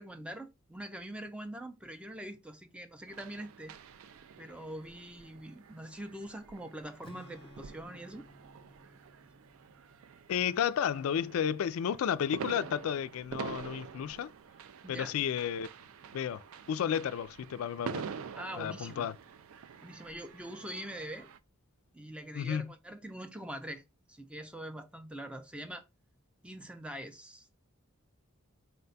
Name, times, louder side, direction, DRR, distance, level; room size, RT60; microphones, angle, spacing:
voice 1, 0.0-3.7 4.4-8.3 14.8-15.1 18.3-19.1 19.8-21.3 21.9-23.8 24.1-25.8 26.4-27.5, right 1 dB, 5° right, 0.4 m, -43 dB
sound 1, 3.1-21.4, right 6 dB, 70° right, 0.4 m, -47 dB
Strum, 7.0-11.1, left 1 dB, 25° left, 0.7 m, -57 dB
voice 2, 10.3-14.3 14.9-15.7 16.1-16.4 16.7-18.0 18.6-19.1 22.3-22.7, left 8 dB, 70° left, 0.3 m, -32 dB
4.2 x 2.2 x 3.9 m
head